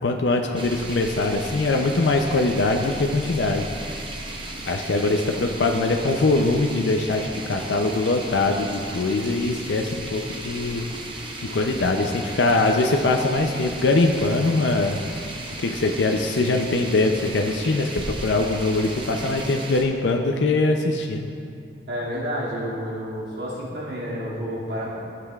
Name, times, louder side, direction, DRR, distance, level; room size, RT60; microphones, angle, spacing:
voice 1, 0.0-3.7 4.6-10.9 11.2-15.0 15.6-21.3, left 2 dB, 80° left, 3 dB, 0.5 m, -22 dB
sound 1, 0.6-19.8, right 2 dB, 30° right, 0.8 m, -35 dB
voice 2, 21.9-25.0, equal, 70° right, -7 dB, 2.3 m, -30 dB
15.0 x 7.6 x 2.4 m, 2.5 s
head